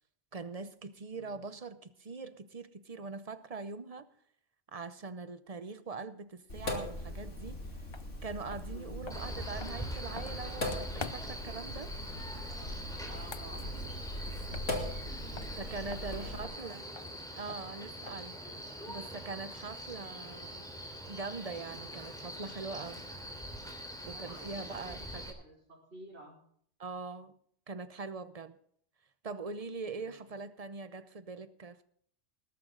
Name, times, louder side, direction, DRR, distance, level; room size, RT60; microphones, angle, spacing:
voice 1, 0.3-4.1 4.7-7.6 8.2-11.9 15.6-16.9 17.3-18.3 18.9-23.0 24.1-25.4 26.8-27.3 27.7-28.6 29.2-31.9, right 4 dB, 35° right, 0.8 m, -42 dB
voice 2, 1.1-1.5 8.7-9.1 13.1-14.0 14.5-14.7 15.0-17.4 24.1-25.1 25.4-26.4 29.9-30.4, right 1 dB, 60° right, 5.3 m, -53 dB
Sink (filling or washing), 6.5-16.4, left 1 dB, 90° left, 2.9 m, -40 dB
sound 1, 7.9-8.1 8.5-11.5 13.0-15.1 15.3-18.4, left 4 dB, 30° left, 0.6 m, -48 dB
Male speech man speaking, 9.1-25.3, equal, 5° left, 3.0 m, -44 dB
20.0 x 11.5 x 3.9 m
omnidirectional pair, 1.2 m